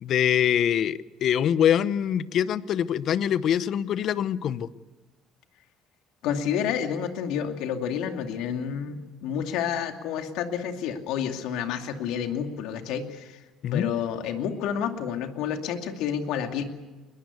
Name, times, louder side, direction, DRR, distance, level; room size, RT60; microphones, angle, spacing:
voice 1, 0.0-4.7 13.6-13.9, left 9 dB, 55° left, 16 dB, 0.8 m, -24 dB
voice 2, 6.2-13.4 13.7-16.6, left 8 dB, 75° left, 5 dB, 2.5 m, -29 dB
21.5 x 20.5 x 8.3 m, 1.2 s
cardioid pair, 110°, 0 cm